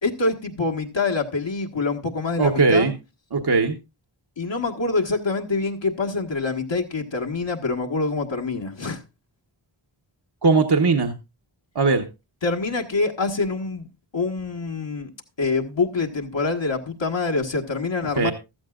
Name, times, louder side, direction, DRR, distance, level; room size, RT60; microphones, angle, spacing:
voice 1, 0.0-2.9 4.4-9.0 12.4-15.1 15.4-18.3, left 3 dB, 60° left, 1.6 m, -25 dB
voice 2, 2.4-2.9 3.3-3.7 10.4-11.1 11.7-12.0 18.2-18.3, right 4 dB, 50° right, 1.2 m, -19 dB
15.0 x 12.5 x 2.5 m
wide cardioid pair, 55°, 49 cm